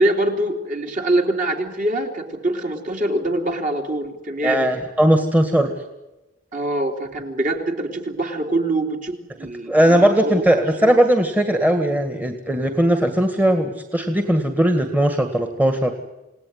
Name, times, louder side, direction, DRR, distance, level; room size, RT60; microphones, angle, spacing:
voice 1, 0.0-4.7 6.5-10.4 10.8-11.0, right 1 dB, 40° right, 3 dB, 3.3 m, -24 dB
voice 2, 4.4-5.7 9.7-15.9, right 1 dB, 10° right, 5 dB, 1.8 m, -18 dB
28.5 x 18.5 x 9.6 m, 1.0 s
head